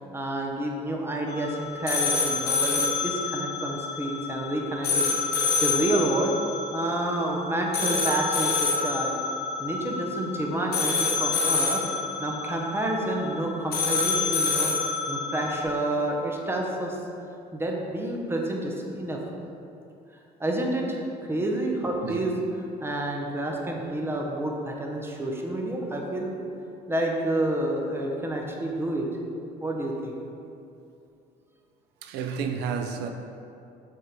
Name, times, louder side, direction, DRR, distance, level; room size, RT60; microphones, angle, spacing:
voice 1, 0.1-5.1 5.5-6.3 6.7-9.2 9.6-11.8 12.2-17.0 17.5-19.2 20.4-21.0 21.3-22.3 22.8-26.4 26.9-29.1 29.6-30.2, right 1 dB, 15° right, 0 dB, 0.8 m, -29 dB
sound 1, 1.3-15.6, left 4 dB, 70° left, 1.1 m, -27 dB
voice 2, 32.0-33.1, right 6 dB, 85° right, 5 dB, 0.6 m, -30 dB
6.5 x 3.7 x 4.4 m, 2.6 s
cardioid pair, 110°, 17 cm